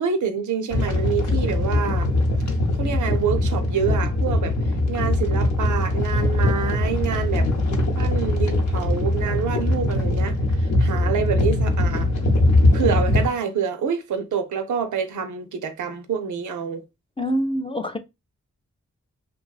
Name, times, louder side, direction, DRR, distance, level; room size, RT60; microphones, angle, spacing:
voice 1, 0.0-2.1 2.8-4.6 4.9-7.5 8.0-12.1 12.7-16.9, right 7 dB, 75° right, 0.5 m, -27 dB
sound 1, 0.7-13.3, left 1 dB, 65° left, 0.7 m, -21 dB
voice 2, 17.2-18.0, equal, 20° left, 0.3 m, -25 dB
2.6 x 2.2 x 2.3 m
cardioid pair, 45°, 31 cm